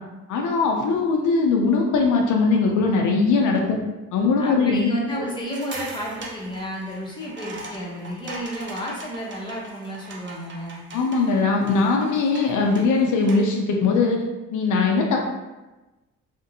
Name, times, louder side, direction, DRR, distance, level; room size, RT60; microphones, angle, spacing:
voice 1, 0.3-3.8 4.1-4.9 10.9-14.2 14.5-15.2, left 4 dB, 75° left, 1 dB, 0.5 m, -20 dB
voice 2, 4.4-10.8, equal, 15° left, -4 dB, 0.7 m, -32 dB
sound 1, 5.4-13.6, right 2 dB, 40° right, 0.6 m, -40 dB
2.6 x 2.1 x 2.6 m, 1.1 s
cardioid pair, 90°, 30 cm